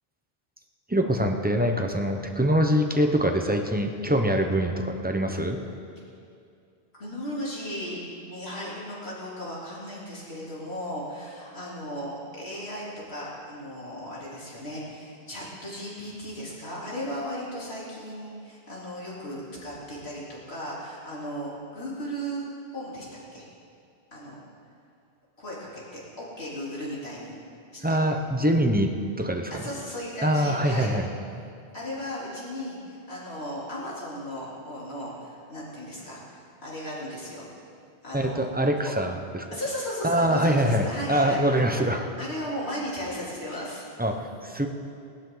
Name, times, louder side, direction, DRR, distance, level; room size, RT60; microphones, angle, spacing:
voice 1, 0.9-5.6 27.8-29.7 30.2-31.1 38.1-39.5 40.0-42.1 44.0-44.7, equal, 10° right, 4 dB, 0.9 m, -24 dB
voice 2, 6.9-8.0 8.3-22.5 22.7-23.4 24.1-24.4 25.4-27.3 27.7-28.0 29.5-30.9 31.7-37.5 38.0-38.9 39.5-41.4 41.7-41.8 42.2-43.8, equal, 75° left, -7 dB, 4.0 m, -36 dB
20.0 x 12.0 x 4.0 m, 2.5 s
omnidirectional pair, 1.1 m